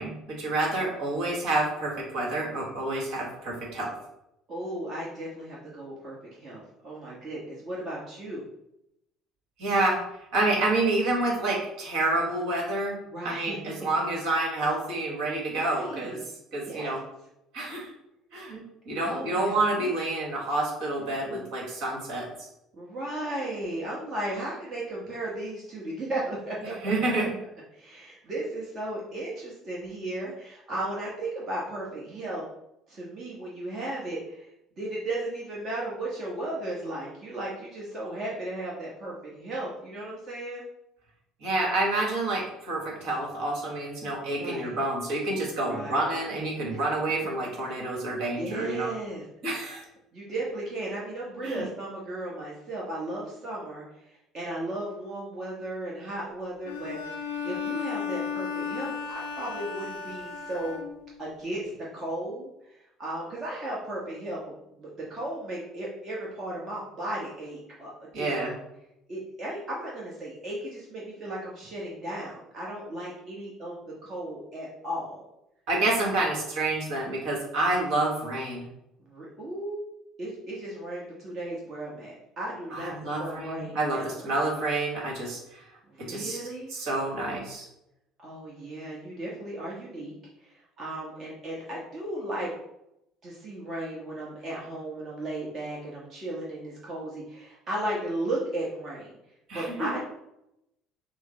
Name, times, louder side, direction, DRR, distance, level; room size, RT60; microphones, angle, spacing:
voice 1, 0.0-3.9 9.6-10.0 10.3-12.9 13.2-16.2 16.5-17.0 17.5-17.9 18.3-22.5 26.8-27.3 41.4-48.9 49.4-49.8 51.4-51.7 68.1-68.5 75.7-78.7 82.7-85.7 86.1-86.4 86.7-87.7 99.5-99.9, right 2 dB, 60° right, -1 dB, 1.6 m, -28 dB
voice 2, 4.5-8.4 13.1-13.6 15.5-16.2 16.6-16.9 19.0-19.9 21.3-21.4 22.7-26.7 27.7-32.4 32.9-34.5 34.8-40.6 44.4-44.7 45.6-46.1 48.4-49.2 50.1-57.0 57.4-60.8 61.2-68.3 69.1-75.3 79.1-79.8 80.2-82.9 83.2-84.3 85.9-86.7 88.2-92.5 93.2-99.2 99.5-100.0, right 1 dB, 40° right, -4 dB, 1.2 m, -35 dB
Bowed string instrument, 56.7-61.3, left 6 dB, 75° left, 0.5 m, -34 dB
6.2 x 2.1 x 3.9 m, 0.84 s
figure-of-eight pair, 60°, 0 cm